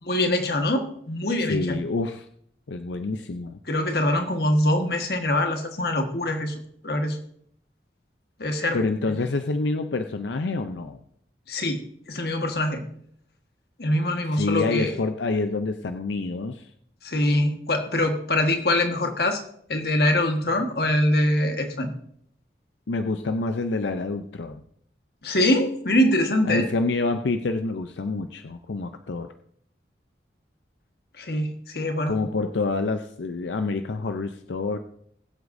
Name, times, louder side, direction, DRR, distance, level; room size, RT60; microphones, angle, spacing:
voice 1, 0.0-1.8 3.7-7.2 8.4-8.8 11.5-12.8 13.8-15.0 17.0-19.4 19.7-21.9 25.2-26.7 31.2-32.2, left 1 dB, 60° left, 5 dB, 1.5 m, -24 dB
voice 2, 1.4-2.3 2.7-3.6 8.7-11.0 14.3-16.7 22.9-24.6 26.5-29.3 32.1-34.8, left 3 dB, 90° left, 8 dB, 0.6 m, -27 dB
21.0 x 8.1 x 2.6 m, 0.68 s
head